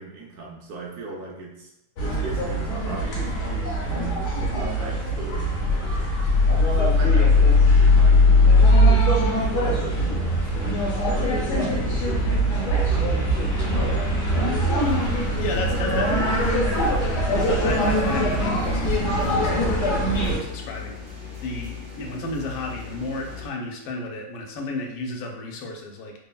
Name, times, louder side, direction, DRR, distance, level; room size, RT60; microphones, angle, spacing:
voice 1, 0.0-1.7 2.0-6.3 6.7-13.9 14.4-14.9, right 3 dB, 70° right, -2 dB, 1.0 m, -38 dB
sound 1, 2.0-20.4, left 1 dB, 60° left, 0.9 m, -21 dB
sound 2, 14.8-23.5, left 6 dB, 40° right, 1.3 m, -38 dB
voice 2, 15.4-21.0 21.4-26.1, left 2 dB, 85° left, 1 dB, 1.2 m, -33 dB
3.2 x 2.0 x 2.2 m, 0.84 s
omnidirectional pair, 1.8 m